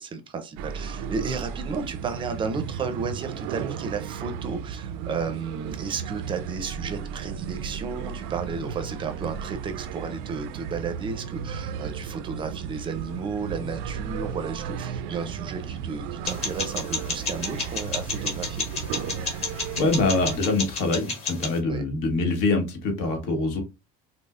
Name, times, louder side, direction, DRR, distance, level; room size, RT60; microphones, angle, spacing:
voice 1, 0.0-18.6 21.6-21.8, right 5 dB, 25° right, 8 dB, 0.5 m, -33 dB
sound 1, 0.6-20.4, right 7 dB, 80° right, 0.4 m, -34 dB
sound 2, 16.3-21.6, left 4 dB, 35° left, 1.2 m, -32 dB
voice 2, 19.8-23.6, left 3 dB, 75° left, 4 dB, 1.2 m, -24 dB
5.2 x 2.0 x 2.4 m, 0.27 s
cardioid pair, 150°, 19 cm